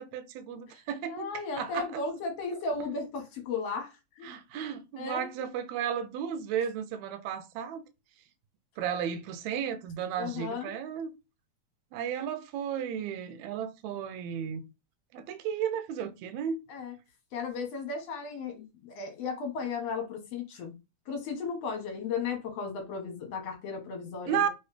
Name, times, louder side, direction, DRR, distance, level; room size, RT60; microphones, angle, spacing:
voice 1, 0.0-1.3 1.6-2.0 4.2-7.9 8.8-11.1 11.9-14.6 15.1-16.6 24.3-24.5, right 8 dB, 80° right, 1.8 m, -34 dB
voice 2, 1.1-4.6 5.0-5.4 10.1-10.7 16.7-16.9 17.3-20.8 21.1-24.5, left 4 dB, 65° left, 2.1 m, -35 dB
4.6 x 3.1 x 3.2 m
omnidirectional pair, 3.4 m